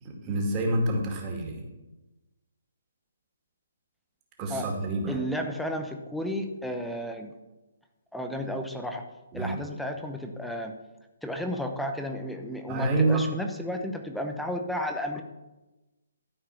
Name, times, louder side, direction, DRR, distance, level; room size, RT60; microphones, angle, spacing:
voice 1, 0.0-1.6 4.4-5.2 9.3-9.5 12.7-13.3, right 2 dB, 25° right, 1 dB, 2.3 m, -27 dB
voice 2, 5.1-7.3 8.1-9.1 9.3-10.8 11.2-15.2, equal, ahead, 4 dB, 0.8 m, -33 dB
13.0 x 4.7 x 5.9 m, 1.1 s
hypercardioid pair, 150°, 0 cm